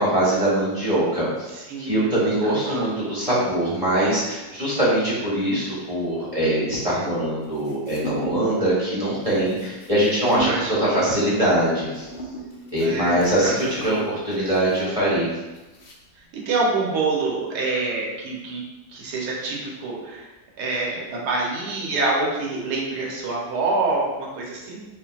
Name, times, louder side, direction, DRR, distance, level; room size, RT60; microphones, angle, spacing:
voice 1, 0.0-1.5 1.8-12.1 12.7-15.3, right 1 dB, 25° right, -8 dB, 1.2 m, -22 dB
voice 2, 1.5-2.2 2.4-2.9 10.4-11.0 12.8-13.5 13.8-14.0 16.3-18.6 18.9-20.2 20.6-24.8, right 3 dB, 80° right, -3 dB, 1.5 m, -26 dB
sound 1, 7.4-8.6 8.9-16.3, right 1 dB, 45° left, 0.8 m, -36 dB
6.7 x 2.7 x 2.4 m, 1.1 s
omnidirectional pair, 1.7 m